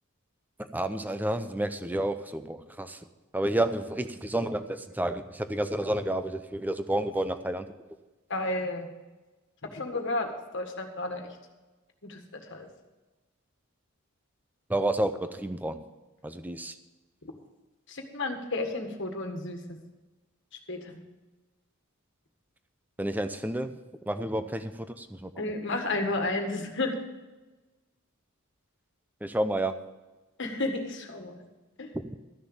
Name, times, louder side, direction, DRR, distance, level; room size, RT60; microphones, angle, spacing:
voice 1, 0.6-3.0 3.3-7.7 14.7-15.8 16.2-16.8 23.0-23.7 24.1-25.3 29.2-29.8 31.9-32.0, right 1 dB, 10° right, 9 dB, 0.6 m, -30 dB
voice 2, 8.3-8.9 9.7-10.3 10.5-11.3 12.0-12.7 17.9-19.6 20.7-21.0 25.4-26.9 30.4-31.4 31.8-31.9, left 2 dB, 55° left, 4 dB, 1.7 m, -32 dB
13.5 x 6.8 x 7.2 m, 1.2 s
head